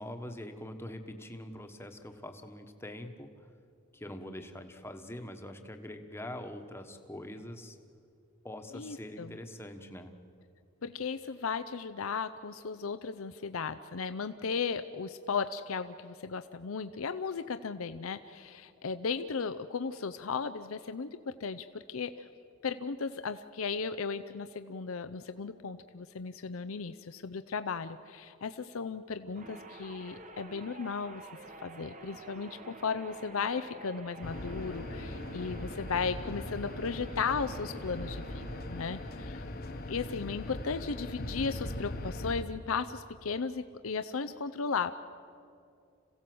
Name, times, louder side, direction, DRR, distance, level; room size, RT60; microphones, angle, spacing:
voice 1, 0.0-3.5 3.9-7.8 8.4-10.1, left 1 dB, 10° left, 6 dB, 1.2 m, -44 dB
voice 2, 8.7-9.4 10.8-22.3 22.6-31.2 31.6-39.4 39.9-44.9, left 5 dB, 85° left, 10 dB, 0.6 m, -36 dB
sound 1, 29.3-39.7, right 3 dB, 35° right, 1.3 m, -49 dB
sound 2, 34.2-42.4, left 1 dB, 45° left, 1.1 m, -40 dB
27.0 x 16.5 x 7.8 m, 2.4 s
head